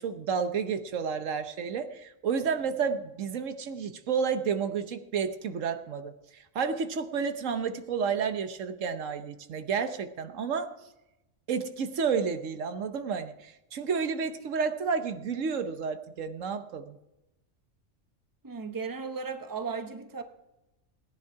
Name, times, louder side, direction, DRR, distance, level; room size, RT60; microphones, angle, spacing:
voice 1, 0.0-10.7 11.5-17.0, right 6 dB, 80° right, 9 dB, 1.3 m, -31 dB
voice 2, 18.4-20.2, right 5 dB, 20° right, 7 dB, 0.9 m, -35 dB
16.5 x 10.5 x 4.7 m, 0.95 s
omnidirectional pair, 1.3 m